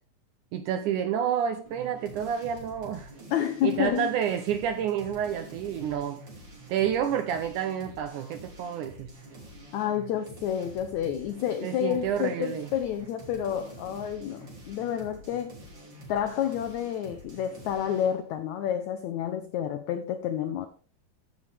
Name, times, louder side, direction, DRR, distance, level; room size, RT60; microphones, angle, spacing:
voice 1, 0.5-3.1 3.6-6.2 6.7-9.1 11.6-12.7, right 9 dB, 80° right, 1.8 m, -29 dB
sound 1, 1.6-18.2, right 2 dB, 35° right, 3.2 m, -47 dB
voice 2, 3.3-4.1 9.7-15.6 16.1-20.7, left 10 dB, 80° left, 1.6 m, -29 dB
15.0 x 6.3 x 3.4 m
omnidirectional pair, 4.1 m